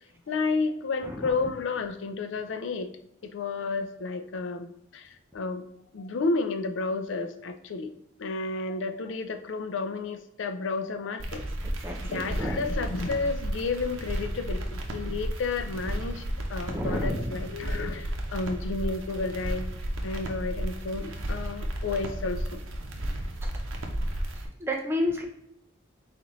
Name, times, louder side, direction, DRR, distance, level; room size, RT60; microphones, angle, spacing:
voice 1, 0.3-2.9 3.2-5.7 5.9-7.9 8.2-11.4 12.1-16.2 16.5-19.7 20.0-22.6, left 3 dB, 70° left, 9 dB, 0.4 m, -31 dB
voice 2, 1.0-1.3 11.6-12.7 16.7-17.3 24.6-25.2, left 1 dB, 10° right, 1 dB, 0.6 m, -31 dB
sound 1, 11.2-24.5, right 1 dB, 90° right, 0.7 m, -33 dB
4.1 x 3.9 x 3.1 m, 0.79 s
head